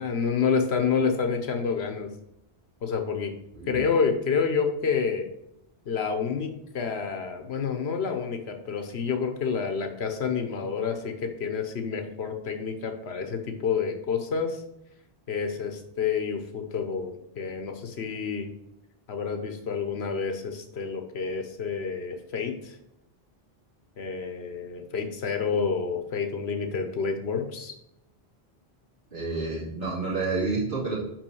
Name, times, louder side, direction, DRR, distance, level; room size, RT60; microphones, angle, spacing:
voice 1, 0.0-2.1 2.8-3.3 3.7-5.3 5.9-14.6 15.3-18.5 19.1-22.8 24.0-27.7, left 6 dB, 85° left, 6 dB, 1.2 m, -29 dB
voice 2, 29.1-31.0, right 3 dB, 55° right, -12 dB, 3.2 m, -29 dB
6.0 x 5.6 x 7.0 m, 0.84 s
omnidirectional pair, 1.0 m